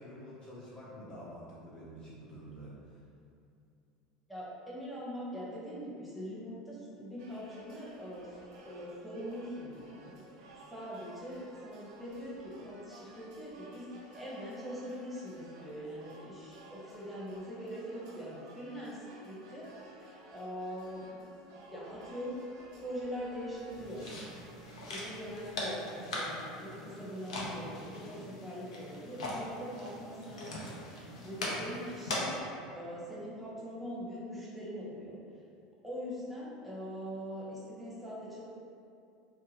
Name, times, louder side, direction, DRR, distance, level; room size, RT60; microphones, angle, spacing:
voice 1, 0.0-3.0, equal, 25° left, -8 dB, 0.6 m, -48 dB
voice 2, 4.3-8.3 8.6-10.2 10.7-21.2 21.7-22.4 22.8-24.0 24.9-32.4 32.7-35.2 35.8-38.4, equal, ahead, -8 dB, 0.8 m, -42 dB
sound 1, 7.2-25.7, right 2 dB, 70° right, 0.4 m, -55 dB
sound 2, 23.7-32.4, left 1 dB, 85° left, 0.5 m, -40 dB
2.8 x 2.2 x 2.8 m, 2.5 s
hypercardioid pair, 90°, 3 cm